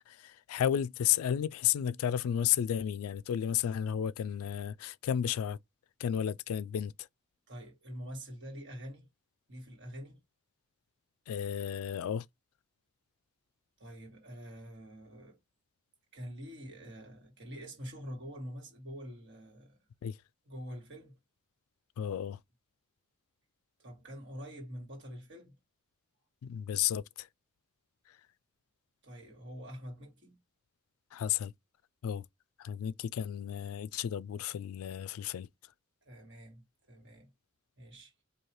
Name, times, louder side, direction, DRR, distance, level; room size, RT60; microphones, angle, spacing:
voice 1, 0.0-5.6 6.0-7.1 11.3-12.3 20.0-20.2 22.0-22.4 26.4-27.3 28.1-28.2 31.1-31.5 32.0-32.3 32.6-35.5, left 9 dB, 70° left, 0.3 m, -33 dB
voice 2, 7.5-9.1 9.5-10.2 13.8-15.4 16.1-19.8 20.5-21.2 23.8-25.6 29.0-30.4 36.0-37.3 37.8-38.1, equal, 55° right, 1.8 m, -46 dB
4.6 x 2.8 x 2.9 m
head